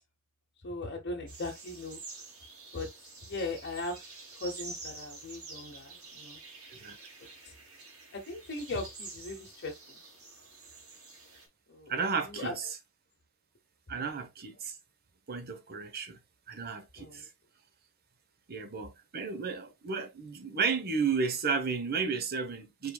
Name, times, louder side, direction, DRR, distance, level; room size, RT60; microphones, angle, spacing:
voice 1, 0.6-2.0 2.7-2.9 3.2-4.0 4.3-6.4 7.4-7.5 8.1-10.0 11.7-11.9 12.2-12.7 17.0-17.3, left 2 dB, 50° left, 0.9 m, -38 dB
sound 1, 1.3-11.5, right 3 dB, 90° right, 2.3 m, -48 dB
voice 2, 11.9-12.7 13.9-14.8 15.3-16.2 16.5-17.3 18.5-22.9, right 5 dB, 45° right, 0.9 m, -33 dB
5.3 x 3.9 x 2.3 m
head